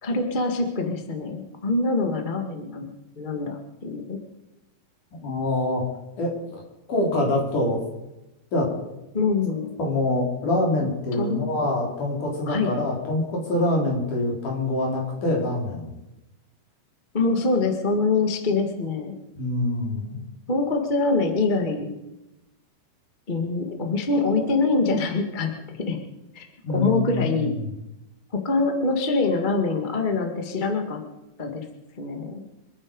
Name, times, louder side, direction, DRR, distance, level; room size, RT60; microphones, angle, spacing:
voice 1, 0.0-4.2 7.1-7.4 9.1-9.7 11.1-11.5 12.5-12.8 17.1-19.1 20.5-21.9 23.3-26.0 26.3-27.6 28.3-31.0 31.4-31.7 32.0-32.5, left 3 dB, 35° left, 4 dB, 0.7 m, -25 dB
voice 2, 5.2-5.8 6.2-6.6 6.9-7.8 8.5-8.7 9.8-15.9 19.3-20.2 26.6-27.7, left 1 dB, 55° left, -1 dB, 5.1 m, -25 dB
26.0 x 9.7 x 5.3 m, 0.94 s
omnidirectional pair, 4.3 m